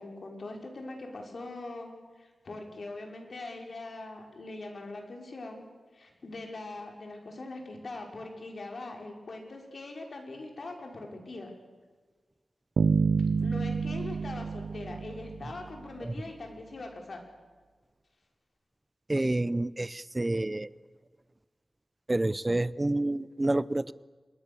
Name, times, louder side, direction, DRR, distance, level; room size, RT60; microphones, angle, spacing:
voice 1, 0.0-5.6 5.9-11.5 13.4-17.2, left 2 dB, 55° left, 2 dB, 5.4 m, -42 dB
Bass guitar, 12.8-15.8, right 5 dB, 90° right, 0.6 m, -28 dB
voice 2, 19.1-20.7 22.1-23.9, right 2 dB, 20° right, 18 dB, 0.7 m, -28 dB
27.0 x 21.5 x 7.1 m, 1.4 s
wide cardioid pair, 105°, 0 cm